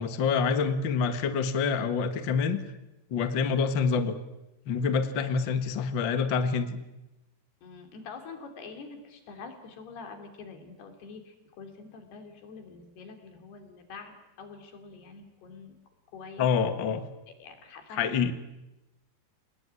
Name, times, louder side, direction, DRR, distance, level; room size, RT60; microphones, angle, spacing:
voice 1, 0.0-2.6 3.1-4.1 4.7-6.8 16.4-17.0 18.0-18.3, left 5 dB, 55° left, 9 dB, 1.3 m, -26 dB
voice 2, 7.6-15.8 16.1-16.5 17.4-18.1, left 4 dB, 80° left, 5 dB, 5.2 m, -45 dB
29.0 x 19.5 x 9.7 m, 0.98 s
omnidirectional pair, 4.6 m